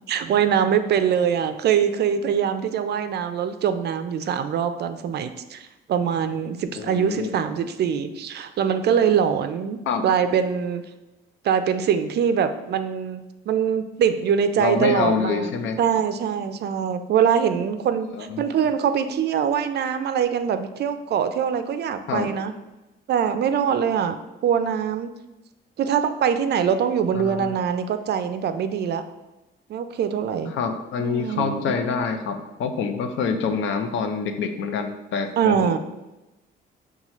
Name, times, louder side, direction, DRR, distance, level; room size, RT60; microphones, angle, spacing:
voice 1, 0.0-10.8 11.4-15.5 15.8-22.5 23.1-24.2 24.4-25.1 25.8-29.0 29.7-30.5 31.0-31.7 35.4-35.8, right 8 dB, 55° right, 10 dB, 0.4 m, -23 dB
voice 2, 6.8-7.3 9.9-10.1 14.6-15.8 18.1-18.4 22.1-22.3 27.1-27.5 30.5-35.8, left 5 dB, 75° left, 6 dB, 0.6 m, -26 dB
5.5 x 2.3 x 3.0 m, 1.0 s
cardioid pair, 90°, 20 cm